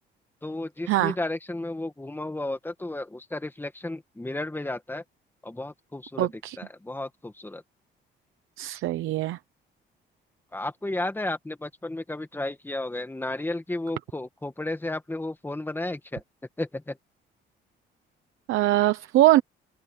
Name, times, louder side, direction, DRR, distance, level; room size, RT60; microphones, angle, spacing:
voice 1, 0.4-5.0 5.4-6.3 6.6-7.6 10.5-16.2 16.6-17.0, left 2 dB, 10° left, 2.1 m, -33 dB
voice 2, 6.2-6.6 8.6-9.4 18.5-19.4, right 15 dB, 90° right, 0.9 m, -22 dB
open air
cardioid pair, 90°, 20 cm